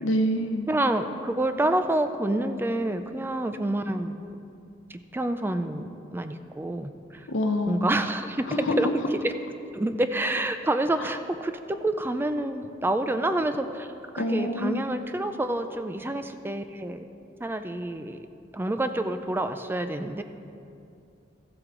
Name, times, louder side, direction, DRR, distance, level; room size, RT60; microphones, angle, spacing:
voice 1, 0.0-0.6 7.3-8.1 8.5-8.8 11.0-11.1 14.2-14.8, left 1 dB, 80° left, 5 dB, 0.8 m, -26 dB
voice 2, 0.7-4.2 4.9-7.3 7.7-8.5 8.8-9.3 9.7-17.1 17.4-18.2 18.5-20.2, right 1 dB, 10° right, 8 dB, 0.3 m, -28 dB
14.5 x 7.7 x 3.8 m, 2.5 s
head